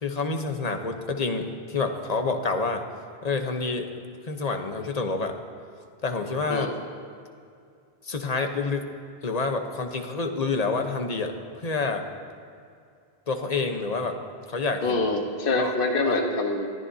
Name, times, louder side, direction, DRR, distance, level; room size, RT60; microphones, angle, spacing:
voice 1, 0.0-2.8 3.2-3.9 4.3-5.3 6.0-6.7 8.0-8.9 9.2-11.3 11.6-12.1 13.3-14.1 14.5-15.0 15.6-15.7 16.0-16.2, left 4 dB, 40° left, 5 dB, 1.0 m, -28 dB
voice 2, 14.8-16.7, left 2 dB, 60° left, 3 dB, 1.4 m, -25 dB
21.5 x 14.0 x 2.8 m, 2.4 s
omnidirectional pair, 1.0 m